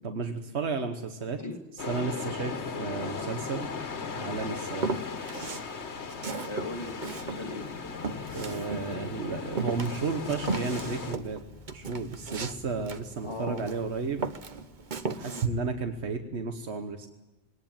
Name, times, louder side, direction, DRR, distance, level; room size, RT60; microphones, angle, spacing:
voice 1, 0.0-1.4 1.9-3.7 4.2-4.9 8.3-11.4 11.7-14.3 15.0-17.1, right 4 dB, 80° right, 6 dB, 1.5 m, -33 dB
sound 1, 1.8-11.2, left 5 dB, 90° left, 1.6 m, -37 dB
Walk footsteps, 4.8-5.7 6.1-9.2 9.6-13.8 14.2-15.5, right 4 dB, 50° right, 1.1 m, -35 dB
voice 2, 6.5-7.7 13.2-13.6 15.2-15.4, left 2 dB, 25° left, 2 dB, 2.1 m, -38 dB
sound 2, 9.5-15.4, left 3 dB, 20° right, 3.6 m, -53 dB
20.5 x 18.0 x 8.9 m, 1.0 s
omnidirectional pair, 1.1 m